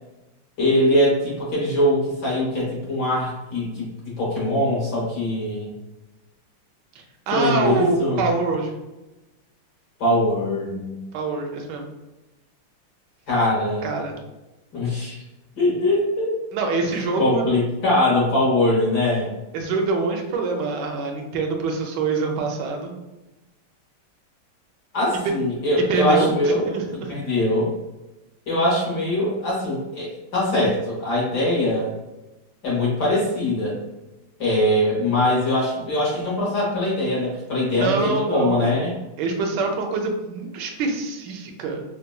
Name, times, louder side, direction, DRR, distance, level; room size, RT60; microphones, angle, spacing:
voice 1, 0.6-5.7 7.3-8.2 10.0-11.0 13.3-13.8 14.7-15.2 15.6-16.4 16.9-19.3 24.9-26.7 27.1-27.8 28.5-31.9 32.6-33.8 34.4-38.9, left 1 dB, 60° left, -5 dB, 1.3 m, -22 dB
voice 2, 7.3-8.7 11.1-11.8 13.8-14.1 16.5-17.5 19.5-22.9 25.2-25.3 25.9-26.8 37.8-38.7 39.2-41.8, right 4 dB, 75° right, 2 dB, 1.0 m, -25 dB
3.7 x 2.1 x 2.3 m, 1.0 s
omnidirectional pair, 2.3 m